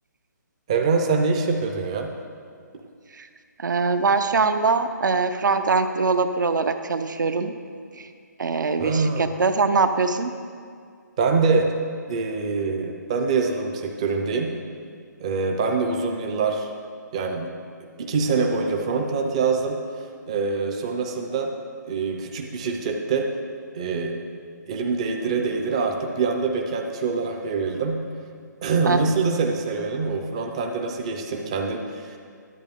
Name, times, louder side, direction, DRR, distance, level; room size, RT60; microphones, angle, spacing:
voice 1, 0.7-2.1 8.8-9.3 11.2-11.7 12.1-14.5 15.2-16.7 17.1-17.5 18.0-21.5 21.9-23.3 23.7-24.2 24.7-28.0 28.6-32.2, right 4 dB, 20° right, 3 dB, 0.4 m, -24 dB
voice 2, 3.6-7.5 7.9-8.1 8.4-10.3 28.9-29.0, right 4 dB, 75° right, 9 dB, 0.7 m, -22 dB
10.5 x 8.4 x 3.5 m, 2.1 s
hypercardioid pair, 170°, 10 cm